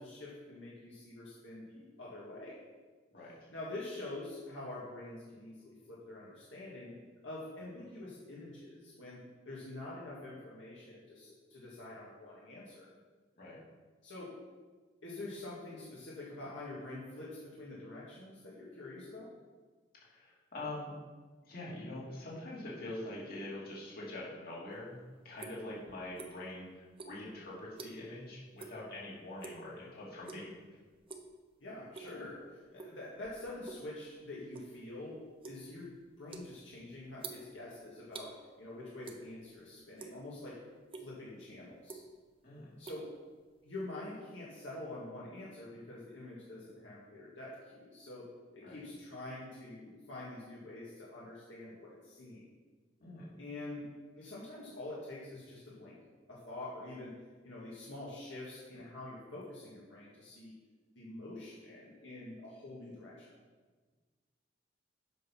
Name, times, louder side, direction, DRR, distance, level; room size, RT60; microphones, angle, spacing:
voice 1, 0.0-2.6 3.2-7.0 7.2-12.9 14.0-14.4 15.0-19.3 31.6-35.9 36.2-40.6 41.0-42.0 42.8-43.1 43.6-52.5 53.4-53.9 54.2-56.0 56.3-57.1 57.4-60.5 61.0-63.3, left 2 dB, 75° left, -7 dB, 2.0 m, -46 dB
voice 2, 20.0-20.9 21.4-25.0 25.2-30.5 42.4-42.7 48.6-48.8 53.0-53.3, left 1 dB, 55° left, -5 dB, 2.9 m, -44 dB
sound 1, 24.7-26.6 26.9-28.2 28.6-28.8 29.2-29.7 30.2-30.6 30.9-31.3 31.7-32.3 32.8-33.9 34.2-38.3 39.0-39.6 39.8-40.5 40.9-41.1 41.6-42.3 42.6-43.7, right 4 dB, 30° right, 0.8 m, -48 dB
8.1 x 6.3 x 5.8 m, 1.4 s
head